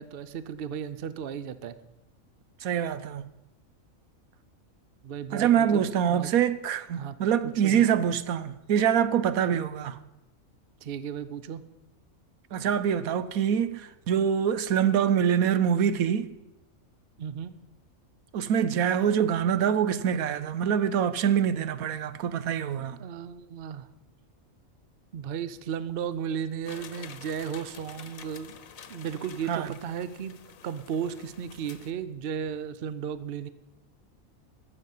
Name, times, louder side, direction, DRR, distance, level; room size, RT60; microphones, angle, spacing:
voice 1, 0.0-1.8 5.0-6.3 7.0-7.1 7.4-7.9 9.5-9.6 10.8-11.6 17.2-17.6 23.0-23.9 25.1-28.5 28.9-30.4 30.6-33.5, right 8 dB, 50° right, 0.8 m, -35 dB
voice 2, 2.6-3.2 5.3-10.0 12.5-16.3 18.3-23.0 29.5-29.7, right 8 dB, 85° right, 1.2 m, -25 dB
sound 1, 26.7-31.9, left 7 dB, 75° left, 1.3 m, -48 dB
21.5 x 7.4 x 5.5 m
omnidirectional pair, 1.4 m